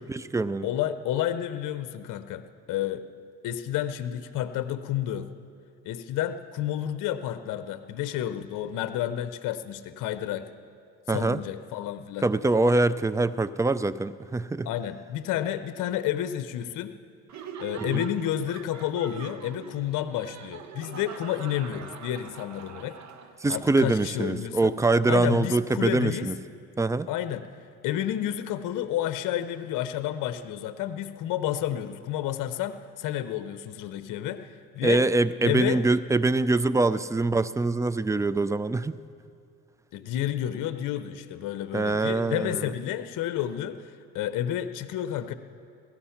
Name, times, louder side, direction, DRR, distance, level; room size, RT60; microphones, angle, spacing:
voice 1, 0.0-0.7 11.1-11.4 12.2-14.7 17.8-18.0 23.4-26.3 26.8-27.1 34.8-38.9 41.7-42.7, right 2 dB, 10° right, 15 dB, 0.3 m, -24 dB
voice 2, 0.6-3.1 3.4-5.3 5.8-10.5 11.1-12.3 14.6-17.0 17.6-23.0 23.5-24.7 25.1-26.3 27.1-27.5 27.8-35.0 35.4-35.8 39.9-45.3, left 11 dB, 70° left, 11 dB, 0.7 m, -30 dB
Laughter, 17.3-23.6, right 8 dB, 55° right, 1.1 m, -42 dB
16.5 x 13.0 x 5.8 m, 2.4 s
cardioid pair, 90°, 33 cm